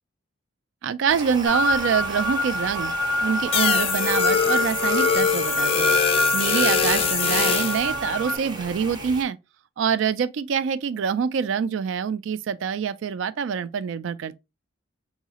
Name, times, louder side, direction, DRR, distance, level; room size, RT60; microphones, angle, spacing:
voice 1, 0.8-2.9 3.2-6.0 6.3-9.4 9.8-14.4, right 7 dB, 80° right, 0.3 m, -25 dB
sound 1, 1.1-9.2, right 1 dB, 25° right, 0.5 m, -37 dB
sound 2, 1.5-8.4, left 1 dB, 60° right, 0.7 m, -26 dB
sound 3, 3.5-7.9, left 7 dB, 30° left, 0.3 m, -23 dB
3.9 x 2.8 x 2.8 m
head